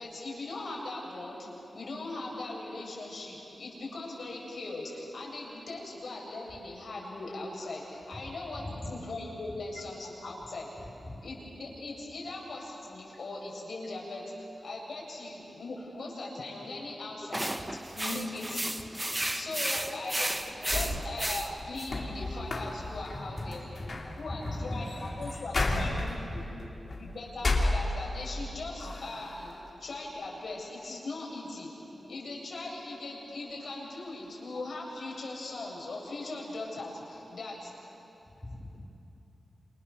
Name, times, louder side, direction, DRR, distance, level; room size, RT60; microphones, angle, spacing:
voice 1, 0.0-1.5 1.7-10.7 11.2-23.6 24.2-26.4 27.0-29.5 29.8-31.7 32.0-37.7, left 2 dB, 70° left, -3 dB, 7.7 m, -39 dB
sound 1, 17.3-21.9, right 1 dB, 15° right, 1.3 m, -33 dB
sound 2, 20.4-28.4 28.8-29.6, left 2 dB, 50° left, 3.4 m, -34 dB
voice 2, 23.4-24.8 25.1-25.2 25.6-25.8 26.3-26.4 26.9-27.0 29.5-29.6 38.3-38.8, left 1 dB, 20° left, 0 dB, 5.3 m, -39 dB
29.0 x 28.5 x 7.1 m, 2.9 s
wide cardioid pair, 110°, 0 cm